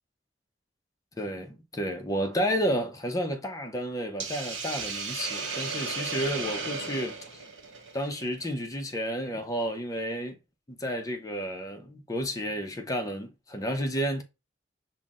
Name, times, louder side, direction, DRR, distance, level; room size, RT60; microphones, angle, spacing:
voice 1, 1.2-7.4 7.9-10.4 10.7-14.2, equal, 20° left, 0.6 m, -31 dB
Hiss, 4.2-8.5, right 4 dB, 90° right, 0.8 m, -35 dB
5.6 x 2.1 x 2.4 m
head